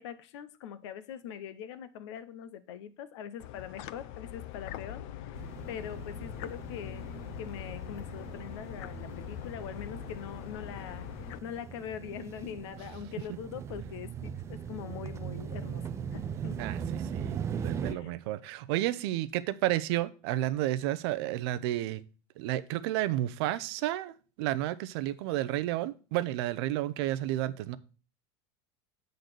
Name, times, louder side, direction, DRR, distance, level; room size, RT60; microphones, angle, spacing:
voice 1, 0.0-11.1 11.4-16.6 17.8-18.1, left 9 dB, 75° left, 0.8 m, -43 dB
sound 1, 3.4-11.4, left 11 dB, 50° left, 0.4 m, -42 dB
sound 2, 5.3-18.0, right 7 dB, 20° right, 0.4 m, -40 dB
voice 2, 16.6-22.0 22.4-27.8, right 14 dB, 60° right, 0.6 m, -31 dB
7.8 x 4.0 x 6.7 m
supercardioid pair, 160°, 15 cm